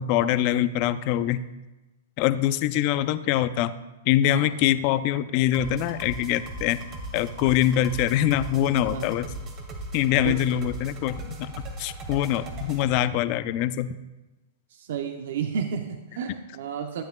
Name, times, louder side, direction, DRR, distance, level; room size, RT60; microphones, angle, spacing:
voice 1, 0.0-1.4 2.2-3.7 4.1-6.8 7.1-9.3 9.9-11.5 11.8-14.0, left 12 dB, 45° left, 13 dB, 0.5 m, -24 dB
sound 1, 5.5-12.9, right 1 dB, 35° right, 2.0 m, -38 dB
voice 2, 14.7-17.0, right 7 dB, 70° right, 6 dB, 0.7 m, -31 dB
14.5 x 8.4 x 2.3 m, 1.1 s
hypercardioid pair, 125°, 0 cm